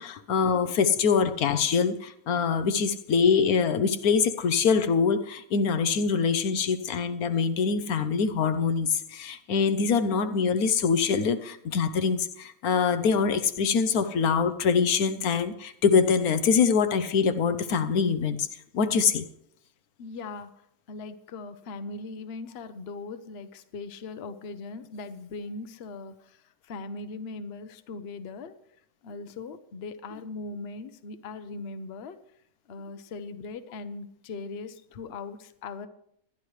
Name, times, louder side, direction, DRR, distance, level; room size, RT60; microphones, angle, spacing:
voice 1, 0.0-18.4 18.7-19.3, left 6 dB, 80° left, 1.3 m, -24 dB
voice 2, 20.0-20.5 20.9-26.4 26.7-28.5 29.0-32.2 32.7-35.9, left 3 dB, 50° left, 1.0 m, -39 dB
20.0 x 12.0 x 3.3 m
omnidirectional pair, 1.6 m